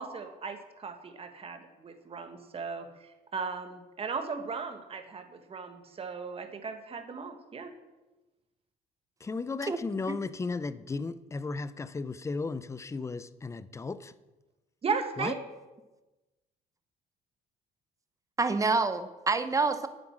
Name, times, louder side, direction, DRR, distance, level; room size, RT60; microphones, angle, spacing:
voice 1, 0.0-7.7 14.8-15.4, right 5 dB, 35° right, 1.6 m, -37 dB
voice 2, 9.2-14.1 15.2-15.3, left 4 dB, 15° left, 0.6 m, -35 dB
voice 3, 18.4-19.9, right 4 dB, 20° right, 0.9 m, -27 dB
9.2 x 9.0 x 7.4 m
cardioid pair, 110°, 17 cm